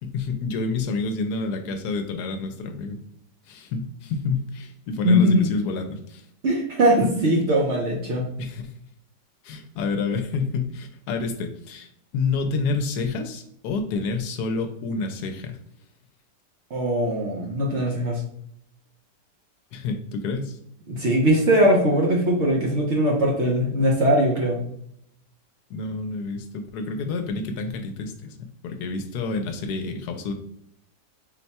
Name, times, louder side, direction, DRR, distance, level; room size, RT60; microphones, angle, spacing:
voice 1, 0.0-3.0 3.5-6.2 7.0-7.1 8.4-8.7 9.4-15.6 19.7-20.6 25.7-30.3, left 4 dB, 75° left, 6 dB, 1.1 m, -28 dB
voice 2, 5.0-5.5 6.4-8.3 16.7-18.2 20.9-24.6, equal, 55° right, -1 dB, 0.9 m, -20 dB
4.4 x 2.2 x 4.1 m, 0.72 s
omnidirectional pair, 1.8 m